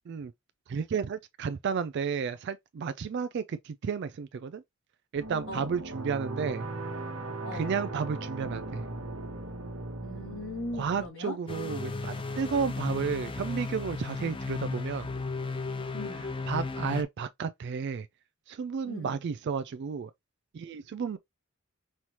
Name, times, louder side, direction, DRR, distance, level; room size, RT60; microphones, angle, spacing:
voice 1, 0.7-4.6 5.1-6.7 7.5-8.8 10.8-15.1 16.5-18.1 18.5-20.1 20.5-21.2, right 6 dB, 50° right, 0.3 m, -32 dB
sound 1, 5.1-11.1, right 2 dB, 70° right, 1.1 m, -38 dB
voice 2, 10.0-11.4 15.9-16.3 18.9-19.2, left 2 dB, 70° left, 3.1 m, -39 dB
sound 2, 11.5-17.0, left 3 dB, 25° left, 0.5 m, -34 dB
5.5 x 3.1 x 2.9 m
head